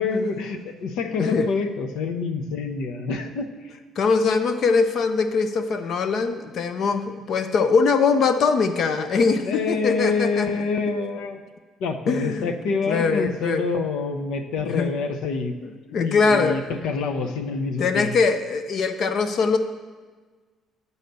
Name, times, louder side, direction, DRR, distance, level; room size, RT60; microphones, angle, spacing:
voice 1, 0.0-3.8 9.4-11.4 11.8-15.5 15.9-18.2, left 4 dB, 80° left, 6 dB, 0.8 m, -27 dB
voice 2, 4.0-10.5 12.1-12.5 12.8-13.7 14.7-14.9 15.6-16.6 17.8-19.6, left 4 dB, 45° left, 9 dB, 0.4 m, -22 dB
10.5 x 4.1 x 6.8 m, 1.4 s
cardioid pair, 155°, 0 cm